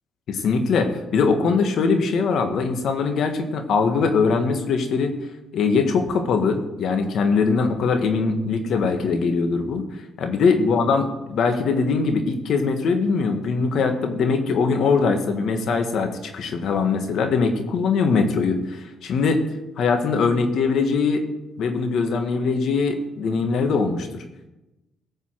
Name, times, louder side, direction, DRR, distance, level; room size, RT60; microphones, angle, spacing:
voice 1, 0.3-5.1 5.5-9.9 10.2-19.4 19.8-21.2 21.6-24.2, left 4 dB, 70° left, 6 dB, 1.8 m, -22 dB
16.0 x 5.6 x 7.6 m, 0.97 s
cardioid pair, 90°, 0 cm